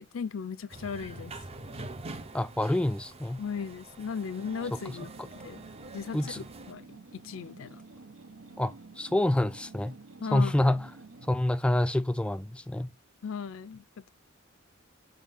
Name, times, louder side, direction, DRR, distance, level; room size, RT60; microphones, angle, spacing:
voice 1, 0.0-1.3 3.4-5.1 5.4-5.6 5.9-6.2 6.7-7.0 7.2-7.8 10.2-10.5 13.2-13.8, left 6 dB, 70° left, 0.5 m, -36 dB
sound 1, 0.7-6.7, right 2 dB, 30° right, 0.6 m, -45 dB
voice 2, 2.3-3.4 4.9-5.3 6.1-6.4 8.6-9.9 10.3-10.9 11.3-12.9, left 1 dB, 5° left, 0.3 m, -27 dB
sound 2, 4.4-11.4, right 3 dB, 80° right, 1.0 m, -50 dB
5.4 x 3.6 x 5.4 m
head